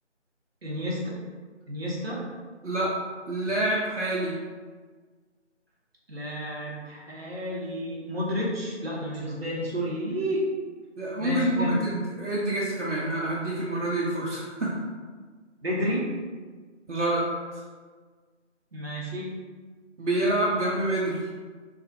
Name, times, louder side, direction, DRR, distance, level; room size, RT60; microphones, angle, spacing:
voice 1, 0.6-1.1 1.7-2.2 6.1-10.5 11.2-11.8 15.6-16.1 18.7-19.3, equal, 55° right, -5 dB, 0.9 m, -30 dB
voice 2, 2.6-2.9 3.3-4.4 11.0-14.8 16.9-17.3 20.0-21.2, right 1 dB, 80° right, -7 dB, 0.8 m, -27 dB
2.9 x 2.5 x 2.7 m, 1.5 s
figure-of-eight pair, 170°, 36 cm